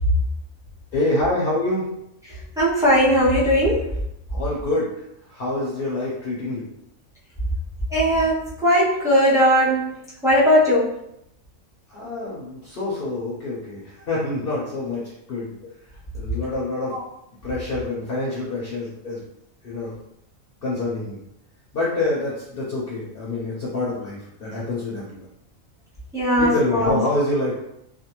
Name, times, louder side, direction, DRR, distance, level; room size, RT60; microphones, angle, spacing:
voice 1, 0.9-1.8 4.3-5.0 5.3-6.7 11.9-15.0 15.3-15.5 16.1-17.0 17.4-19.2 19.6-19.9 20.6-21.2 21.7-25.3 26.4-27.6, left 2 dB, 55° left, -6 dB, 0.7 m, -26 dB
voice 2, 2.6-3.9 7.9-11.0 16.9-17.0 26.1-27.0, equal, 5° right, -8 dB, 0.4 m, -19 dB
2.5 x 2.2 x 2.9 m, 0.78 s
omnidirectional pair, 1.4 m